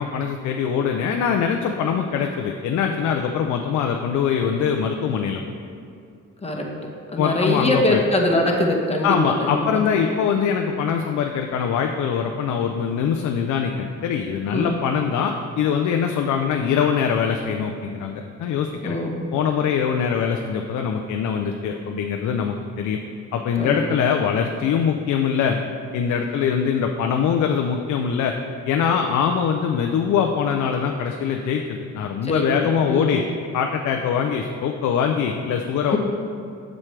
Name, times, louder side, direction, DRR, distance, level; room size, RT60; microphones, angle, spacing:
voice 1, 0.0-5.4 7.2-8.0 9.0-19.0 19.3-23.0 23.3-25.6 25.9-28.3 28.7-33.2 33.5-36.0, left 7 dB, 70° left, 3 dB, 0.5 m, -23 dB
voice 2, 7.1-9.8 14.5-14.8 18.8-19.3 23.6-23.8 32.2-32.4 32.8-33.2 35.9-36.0, left 1 dB, 20° left, 0 dB, 1.1 m, -22 dB
7.4 x 6.3 x 3.3 m, 2.5 s
cardioid pair, 90°, 30 cm